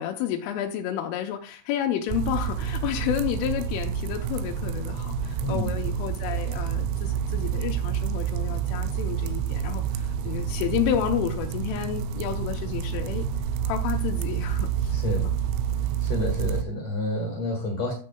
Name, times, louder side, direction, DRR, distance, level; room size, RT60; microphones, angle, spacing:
voice 1, 0.0-13.3 13.6-15.2, left 10 dB, 85° left, 3 dB, 3.3 m, -30 dB
sound 1, 2.1-16.6, right 8 dB, 85° right, 3.1 m, -28 dB
voice 2, 5.4-5.7 14.9-15.3 16.0-17.9, left 2 dB, 55° left, 2 dB, 2.0 m, -29 dB
14.0 x 6.5 x 2.3 m, 0.40 s
omnidirectional pair, 5.5 m